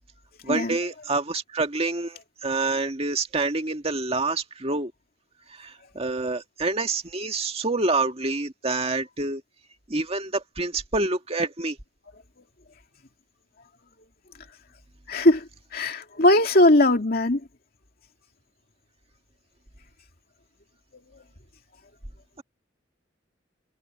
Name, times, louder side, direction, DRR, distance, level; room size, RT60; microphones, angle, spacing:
voice 1, 0.4-4.9 5.5-9.4 9.9-11.8, right 3 dB, 35° right, 1.9 m, -27 dB
voice 2, 15.1-15.4 15.7-17.4, left 1 dB, 55° left, 2.6 m, -19 dB
head